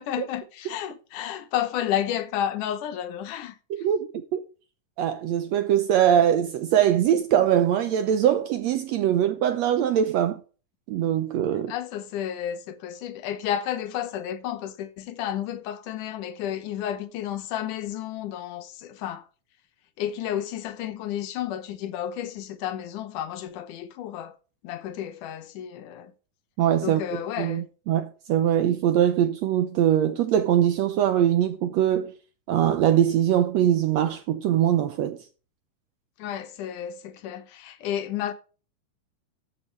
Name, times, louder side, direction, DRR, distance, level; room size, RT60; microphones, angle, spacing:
voice 1, 0.0-3.6 11.7-19.3 20.0-24.4 24.6-26.1 26.8-27.7 36.2-38.3, left 10 dB, 75° left, 2.4 m, -31 dB
voice 2, 3.8-4.4 5.0-10.4 10.9-11.7 26.6-27.0 27.4-32.1 32.5-35.2, right 10 dB, 75° right, 1.6 m, -22 dB
13.5 x 7.2 x 3.3 m
omnidirectional pair, 3.8 m